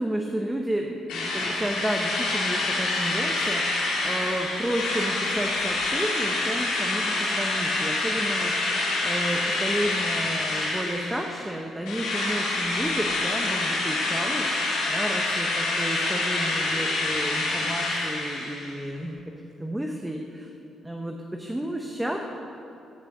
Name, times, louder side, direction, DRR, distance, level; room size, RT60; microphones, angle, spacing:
voice 1, 0.0-14.5 14.9-19.2 19.6-20.5 20.8-22.2, right 1 dB, 10° right, 2 dB, 0.9 m, -31 dB
Drill, 1.1-11.5 11.9-18.8, left 2 dB, 85° left, 2.9 m, -27 dB
14.0 x 6.2 x 7.5 m, 2.8 s
cardioid pair, 90°, 0 cm